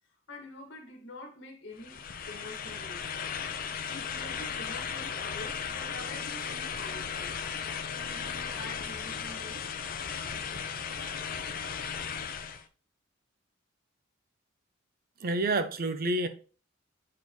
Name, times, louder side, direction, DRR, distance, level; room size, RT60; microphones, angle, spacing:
voice 1, 0.3-3.1 3.9-9.7, left 2 dB, 60° left, 1.7 m, -46 dB
sound 1, 1.8-12.7, left 7 dB, 45° left, 0.5 m, -36 dB
voice 2, 15.2-16.3, right 2 dB, 50° right, 0.6 m, -28 dB
7.4 x 4.4 x 3.1 m
head